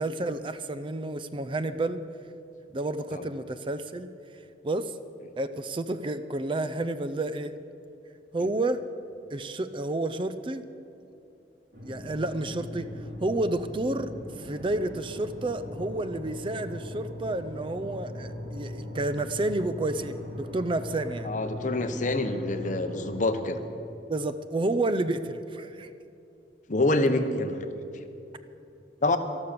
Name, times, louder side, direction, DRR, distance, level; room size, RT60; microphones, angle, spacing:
voice 1, 0.0-2.0 2.7-5.0 5.4-7.6 8.3-8.8 9.3-10.6 11.8-21.3 24.1-25.9, right 2 dB, 30° right, 12 dB, 0.4 m, -30 dB
sound 1, 11.7-23.4, left 1 dB, 70° right, 3.1 m, -39 dB
voice 2, 21.2-23.6 26.7-27.7 27.9-28.1 29.0-29.2, left 2 dB, 45° left, 9 dB, 0.9 m, -26 dB
13.0 x 12.5 x 6.7 m, 2.8 s
head